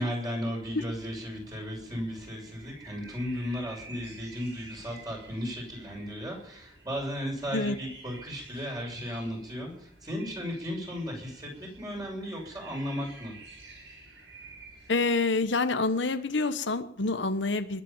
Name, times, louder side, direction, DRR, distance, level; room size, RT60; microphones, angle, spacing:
voice 1, 0.0-13.3, equal, 20° right, -1 dB, 7.1 m, -35 dB
sound 1, 0.6-14.9, right 2 dB, 75° right, 7.1 m, -50 dB
voice 2, 14.9-17.8, left 3 dB, 75° left, 9 dB, 1.1 m, -27 dB
20.5 x 8.3 x 7.4 m, 0.71 s
head